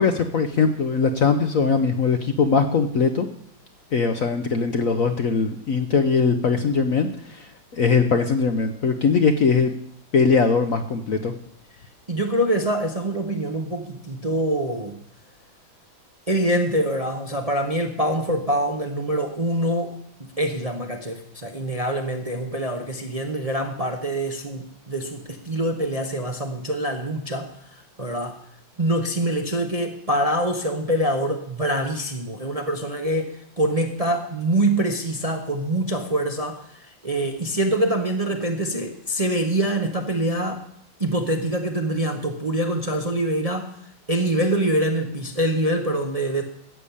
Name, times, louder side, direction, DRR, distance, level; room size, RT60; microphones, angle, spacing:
voice 1, 0.0-3.3 3.9-9.7 10.1-11.3, left 5 dB, 55° left, 6 dB, 1.0 m, -21 dB
voice 2, 12.1-15.0 16.3-28.4 28.8-40.6 41.0-43.7 44.1-46.4, right 1 dB, 25° right, 3 dB, 0.8 m, -25 dB
13.5 x 6.9 x 8.5 m, 0.69 s
omnidirectional pair, 2.2 m